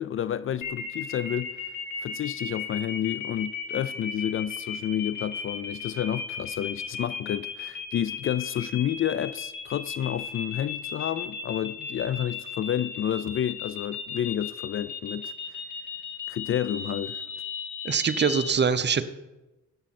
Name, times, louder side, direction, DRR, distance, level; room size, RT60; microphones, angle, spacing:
voice 1, 0.0-1.5 2.0-15.3 16.3-17.2, left 10 dB, 45° left, 0.4 m, -30 dB
sound 1, 0.6-18.5, left 6 dB, 80° left, 1.9 m, -35 dB
voice 2, 17.8-19.0, right 6 dB, 35° right, 0.8 m, -23 dB
14.0 x 8.7 x 4.2 m
cardioid pair, 90°, 30 cm